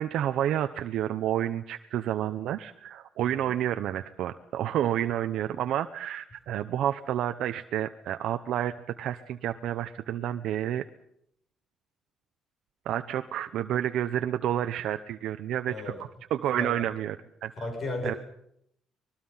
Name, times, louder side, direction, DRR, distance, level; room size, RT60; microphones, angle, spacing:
voice 1, 0.0-10.9 12.9-15.9 16.3-17.2 17.4-17.5 18.0-18.1, right 11 dB, 75° right, 8 dB, 0.9 m, -30 dB
voice 2, 15.7-16.0 16.6-16.7 17.6-18.2, left 2 dB, 35° left, 4 dB, 7.8 m, -34 dB
25.5 x 21.0 x 5.7 m, 0.74 s
cardioid pair, 155°, 0 cm